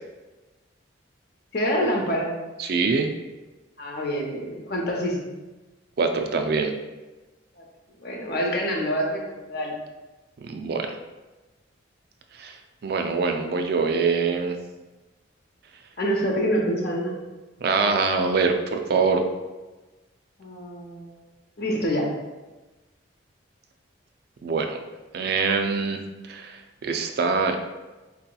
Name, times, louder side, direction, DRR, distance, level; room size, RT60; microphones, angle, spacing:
voice 1, 1.5-2.3 3.8-5.3 8.0-9.7 16.0-17.2 20.4-21.2 21.6-22.1, equal, 55° left, 0 dB, 0.7 m, -26 dB
voice 2, 2.6-3.1 6.0-6.7 10.4-11.0 12.3-14.6 17.6-19.3 24.4-24.8 25.1-26.0 26.3-27.6, right 4 dB, 55° right, 5 dB, 0.3 m, -24 dB
4.6 x 2.8 x 2.2 m, 1.1 s
head